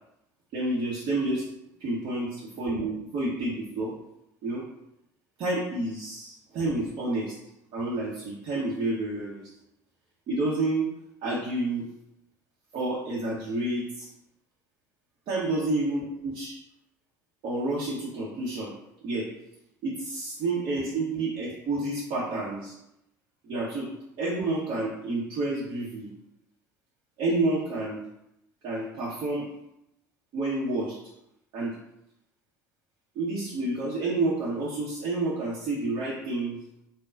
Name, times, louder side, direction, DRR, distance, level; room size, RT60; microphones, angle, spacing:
voice 1, 0.5-1.4 1.8-3.9 4.4-4.6 5.4-7.3 7.7-9.4 10.3-10.9 11.2-11.9 12.7-14.1 15.3-16.5 17.4-18.7 19.0-19.3 19.8-22.7 23.4-23.9 24.2-26.1 27.2-28.0 28.6-29.5 30.3-31.0 31.5-31.7 33.1-36.6, right 2 dB, 55° right, -6 dB, 0.9 m, -29 dB
3.8 x 2.2 x 3.8 m, 0.84 s
figure-of-eight pair, 65°, 10 cm